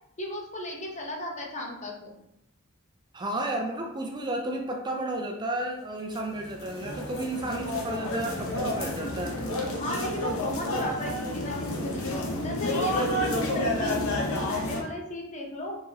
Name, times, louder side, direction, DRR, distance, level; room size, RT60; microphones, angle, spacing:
voice 1, 0.2-2.1 9.6-12.2 12.4-15.8, left 1 dB, 35° left, 0 dB, 0.8 m, -36 dB
voice 2, 3.1-9.4, right 1 dB, 20° right, 1 dB, 0.4 m, -32 dB
sound 1, 6.1-14.8, left 1 dB, 65° left, 0.9 m, -30 dB
4.7 x 3.6 x 2.8 m, 0.84 s
head